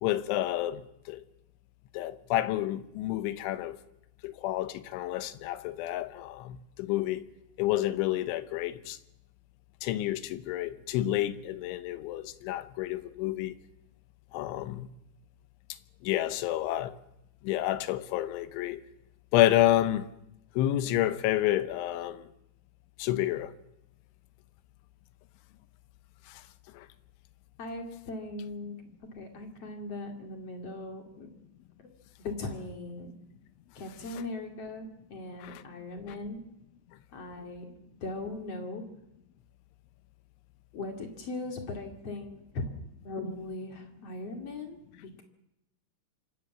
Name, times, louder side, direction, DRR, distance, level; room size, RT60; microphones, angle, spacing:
voice 1, 0.0-1.2 1.9-3.8 4.2-7.2 7.6-9.0 9.8-13.6 14.3-14.9 16.0-17.0 17.4-18.8 19.3-20.1 20.6-22.3 23.0-23.5 26.3-26.4 26.7-26.9 35.4-35.6, left 14 dB, 80° left, 3.2 m, -29 dB
voice 2, 27.6-28.7 29.1-31.3 31.8-31.9 32.2-33.2 33.7-36.4 37.1-37.7 38.0-38.8 40.7-42.6 43.0-45.2, left 2 dB, 40° left, 2.7 m, -39 dB
26.5 x 17.5 x 7.4 m
omnidirectional pair, 5.6 m